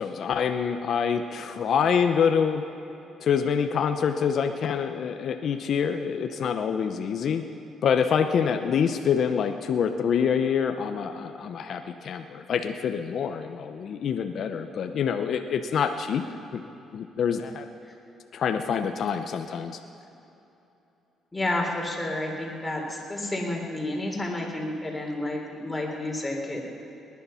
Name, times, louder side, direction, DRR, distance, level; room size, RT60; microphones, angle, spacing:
voice 1, 0.0-2.6 3.2-7.4 7.8-16.2 16.5-16.6 16.9-17.6 18.3-19.8, left 7 dB, 60° left, 6 dB, 0.7 m, -26 dB
voice 2, 21.3-26.7, left 1 dB, 10° left, -1 dB, 3.4 m, -30 dB
19.5 x 10.5 x 5.6 m, 2.9 s
cardioid pair, 95°, 0 cm